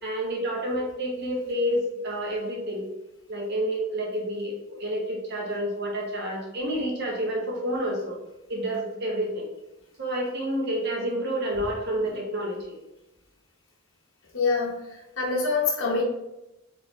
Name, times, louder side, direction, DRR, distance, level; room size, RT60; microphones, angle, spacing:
voice 1, 0.0-2.8 3.3-8.2 8.5-9.5 10.0-12.8, equal, 50° right, -1 dB, 1.1 m, -29 dB
voice 2, 14.3-16.0, left 4 dB, 65° left, -2 dB, 1.1 m, -26 dB
4.6 x 3.4 x 3.1 m, 0.94 s
head